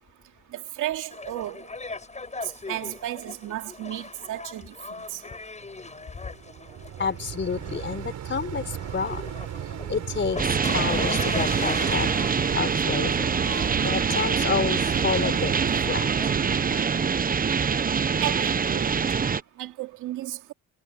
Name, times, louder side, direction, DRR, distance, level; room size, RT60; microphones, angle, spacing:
voice 1, 0.5-1.7 2.7-4.7 5.1-5.2 18.2-18.9 19.6-20.5, right 14 dB, 85° right, 2.5 m, -33 dB
sound 1, 1.1-19.2, left 3 dB, 25° left, 7.8 m, -40 dB
sound 2, 5.6-16.8, right 10 dB, 70° right, 6.5 m, -36 dB
voice 2, 7.0-9.2 9.6-13.3 13.6-15.5 15.9-16.1, left 5 dB, 40° left, 4.6 m, -30 dB
sound 3, 10.4-19.4, right 6 dB, 30° right, 0.8 m, -25 dB
cardioid pair, 90°, 30 cm